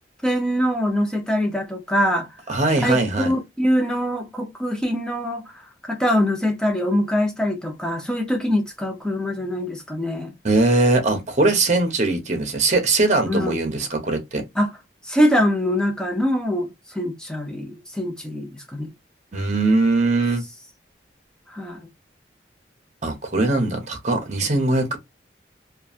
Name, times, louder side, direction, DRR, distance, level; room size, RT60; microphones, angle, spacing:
voice 1, 0.2-2.3 2.8-5.5 5.8-10.3 13.3-13.6 14.5-14.7 15.1-16.7 16.9-18.9 21.5-21.9, equal, 5° left, 0.7 m, -23 dB
voice 2, 2.5-3.3 10.4-14.4 19.3-20.4 23.0-25.0, right 2 dB, 40° right, 0.9 m, -20 dB
3.0 x 2.4 x 2.5 m
head